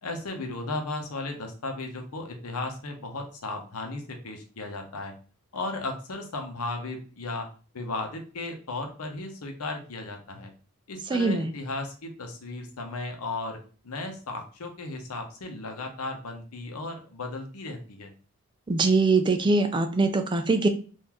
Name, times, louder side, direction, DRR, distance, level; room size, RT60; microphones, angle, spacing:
voice 1, 0.0-5.1 5.5-7.5 7.7-10.5 10.9-18.1, left 2 dB, 90° left, 4 dB, 0.8 m, -35 dB
voice 2, 11.1-11.5 18.7-20.7, right 3 dB, 20° right, 7 dB, 0.3 m, -22 dB
3.7 x 2.6 x 2.9 m, 0.38 s
head